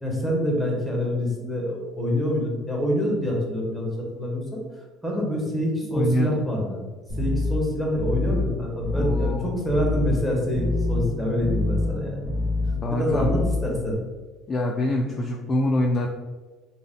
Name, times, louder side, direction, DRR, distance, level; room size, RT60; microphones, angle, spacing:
voice 1, 0.0-6.8 7.2-12.2 12.9-14.0, equal, ahead, -2 dB, 0.9 m, -26 dB
voice 2, 5.9-6.3 8.9-9.5 12.8-13.4 14.5-16.1, left 1 dB, 25° left, 0 dB, 0.3 m, -25 dB
sound 1, 7.1-13.9, left 2 dB, 70° right, 1.3 m, -27 dB
3.5 x 2.1 x 3.6 m, 1.3 s
cardioid pair, 125°, 0 cm